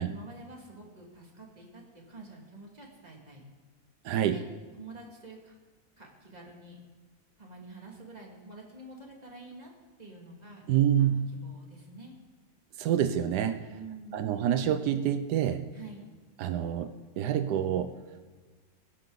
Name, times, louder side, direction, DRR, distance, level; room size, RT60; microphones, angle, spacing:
voice 1, 0.1-3.4 4.3-4.4 4.8-5.5 6.0-6.8 7.4-9.7 10.0-10.6 11.0-12.2 13.7-14.2 15.7-16.1, right 2 dB, 25° right, -1 dB, 2.6 m, -48 dB
voice 2, 4.0-4.4 10.7-11.3 12.8-13.6 14.1-15.7 16.4-17.9, right 10 dB, 90° right, 9 dB, 1.3 m, -27 dB
22.0 x 10.5 x 4.0 m, 1.3 s
omnidirectional pair, 1.7 m